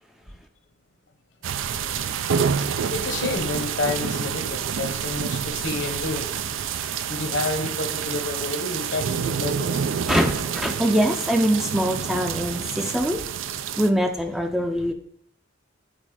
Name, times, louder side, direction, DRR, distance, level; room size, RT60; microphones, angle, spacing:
sound 1, 1.4-13.9, right 7 dB, 85° right, 0.4 m, -28 dB
voice 1, 2.9-6.3 7.1-9.8, left 3 dB, 65° left, 6 dB, 1.0 m, -29 dB
voice 2, 10.1-13.2 13.8-14.9, equal, ahead, 4 dB, 0.4 m, -23 dB
7.5 x 4.2 x 4.9 m, 0.63 s
head